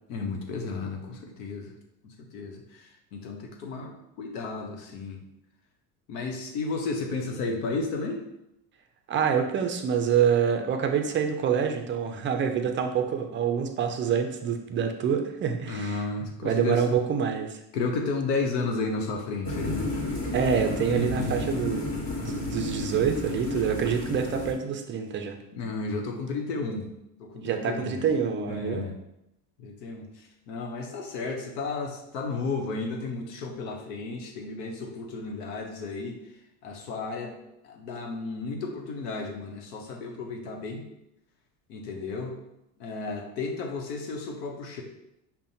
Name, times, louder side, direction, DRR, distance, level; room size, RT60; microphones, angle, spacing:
voice 1, 0.1-1.7 2.0-5.2 6.1-8.2 15.7-17.0 17.7-19.9 20.9-21.4 25.5-26.9 27.2-28.0 28.5-29.0 29.6-30.1 30.5-36.2 36.6-37.3 37.7-40.8 41.7-42.3 42.8-44.8, left 3 dB, 90° left, 2 dB, 0.8 m, -33 dB
voice 2, 9.1-16.0 16.4-17.6 20.3-25.4 27.4-28.9, right 7 dB, 25° right, 5 dB, 0.3 m, -26 dB
sound 1, 19.4-24.5, left 2 dB, 50° left, 1.4 m, -32 dB
5.4 x 2.1 x 2.6 m, 0.84 s
supercardioid pair, 90°, 48 cm